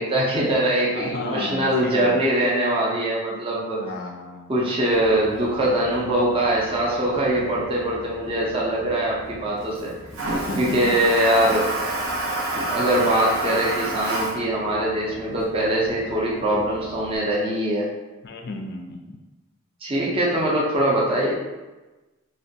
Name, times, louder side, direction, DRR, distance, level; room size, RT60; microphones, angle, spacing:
voice 1, 0.0-3.8 4.5-9.9 10.6-11.7 12.5-17.9 19.8-21.3, right 1 dB, 25° right, -5 dB, 0.4 m, -22 dB
voice 2, 0.9-2.3 3.7-4.5 10.3-11.0 11.3-11.6 18.2-19.2, left 3 dB, 50° left, 3 dB, 0.3 m, -33 dB
Toilet flush, 4.9-17.2, right 2 dB, 65° right, 0.6 m, -32 dB
3.1 x 2.2 x 2.6 m, 1.1 s
head